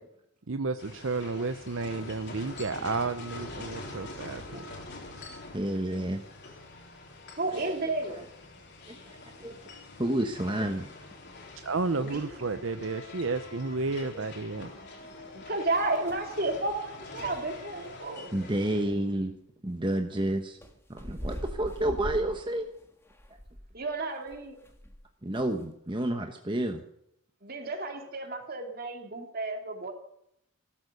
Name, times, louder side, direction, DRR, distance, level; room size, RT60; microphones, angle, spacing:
voice 1, 0.5-4.6 11.6-14.7, right 3 dB, 60° right, 9 dB, 0.7 m, -32 dB
sound 1, 0.8-18.8, left 2 dB, 50° left, 3.8 m, -45 dB
voice 2, 5.5-6.2 7.5-7.7 9.4-9.5 10.0-10.9 14.1-14.2 18.3-19.3 19.6-20.6 20.9-22.7 25.2-26.8, right 1 dB, 20° right, 4 dB, 1.0 m, -30 dB
voice 3, 7.4-8.2 12.0-12.3 15.5-18.4 23.7-24.6 27.4-29.9, right 2 dB, 45° right, 4 dB, 2.7 m, -32 dB
sound 2, 15.7-16.3 16.7-16.8 17.2-17.4 18.9-19.0 20.6-25.1 25.3-25.6, equal, 10° left, 1.6 m, -42 dB
16.0 x 13.0 x 6.7 m, 0.74 s
head